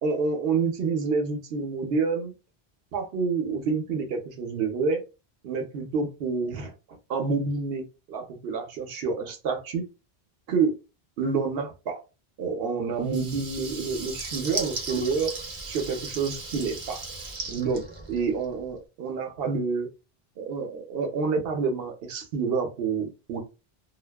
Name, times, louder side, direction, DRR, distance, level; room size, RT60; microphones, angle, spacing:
voice 1, 0.0-2.3 2.9-5.0 5.4-6.7 7.1-9.8 10.5-10.7 11.2-12.0 12.4-15.3 15.7-17.0 17.5-17.8 18.1-19.9 20.4-23.4, right 4 dB, 70° right, 0.8 m, -28 dB
Water tap faucet / Liquid, 13.0-18.5, right 3 dB, 40° right, 0.6 m, -36 dB
2.4 x 2.2 x 2.2 m
omnidirectional pair, 1.0 m